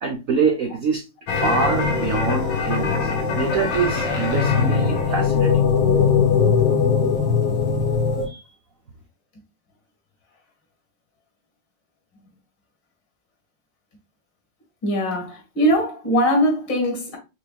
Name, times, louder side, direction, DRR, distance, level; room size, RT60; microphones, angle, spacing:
voice 1, 0.0-3.1 3.3-5.6 8.3-8.4, right 5 dB, 65° right, 0.8 m, -25 dB
sound 1, 1.3-8.3, left 6 dB, 90° left, 2.0 m, -20 dB
voice 2, 14.8-17.2, equal, 60° left, 2.5 m, -21 dB
5.8 x 3.3 x 2.3 m
omnidirectional pair, 2.2 m